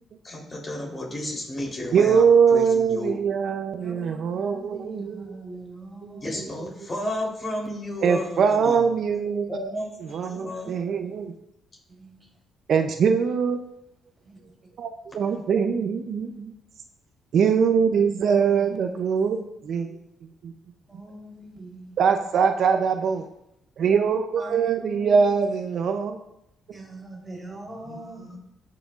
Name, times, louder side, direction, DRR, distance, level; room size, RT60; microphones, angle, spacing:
voice 1, 0.2-2.3 2.5-3.1 6.2-8.9 9.5-10.8 27.9-28.4, left 1 dB, 30° left, -2 dB, 3.6 m, -33 dB
voice 2, 1.9-5.2 6.0-6.4 8.0-9.5 10.0-11.3 12.7-13.6 14.8-16.5 17.3-20.0 20.4-20.5 22.0-23.3 23.8-26.2, right 6 dB, 65° right, 6 dB, 0.6 m, -22 dB
voice 3, 3.8-6.5 10.9-11.3 11.9-12.3 14.2-14.4 15.3-15.4 18.4-19.3 20.9-22.3 24.4-25.4 26.7-28.4, right 1 dB, 20° right, -2 dB, 3.6 m, -42 dB
16.5 x 5.9 x 2.5 m, 0.81 s
cardioid pair, 90°, 0 cm